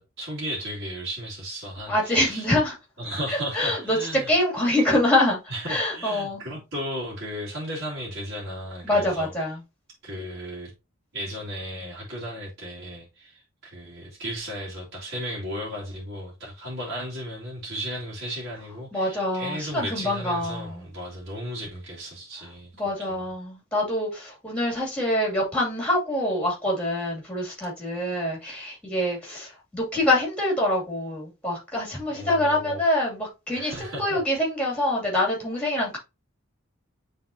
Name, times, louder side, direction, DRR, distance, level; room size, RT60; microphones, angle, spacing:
voice 1, 0.0-2.5 3.0-4.3 5.5-9.3 10.0-10.7 11.1-22.7 23.1-23.2 32.1-32.8 33.5-34.2, equal, 50° right, 2.5 m, -35 dB
voice 2, 1.9-2.7 3.3-5.4 5.7-6.4 8.8-9.6 18.9-20.8 22.8-36.0, left 1 dB, 5° left, 2.5 m, -25 dB
9.5 x 3.6 x 2.7 m
head